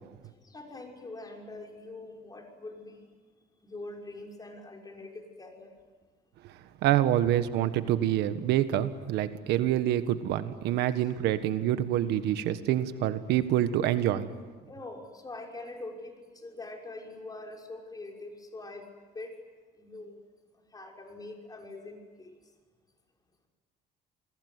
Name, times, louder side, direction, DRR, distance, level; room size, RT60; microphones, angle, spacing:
voice 1, 0.4-3.1 3.6-5.7 14.7-18.9 19.1-19.3 19.8-20.2 20.7-22.3, left 2 dB, 20° left, 1 dB, 6.0 m, -43 dB
voice 2, 6.8-14.3, right 12 dB, 85° right, 11 dB, 1.5 m, -26 dB
29.0 x 20.5 x 9.7 m, 1.4 s
cardioid pair, 110°, 17 cm